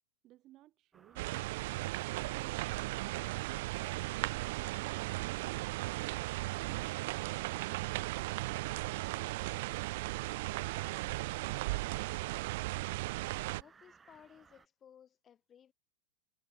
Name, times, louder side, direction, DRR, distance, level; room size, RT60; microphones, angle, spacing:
voice 1, 0.2-1.4, right 15 dB, 30° right, 2.1 m, -59 dB
sound 1, 0.9-14.7, right 5 dB, 10° right, 1.6 m, -63 dB
sound 2, 1.2-13.6, right 21 dB, 50° right, 0.5 m, -36 dB
voice 2, 13.5-15.7, left 9 dB, 15° left, 2.3 m, -59 dB
supercardioid pair, 170°, 0 cm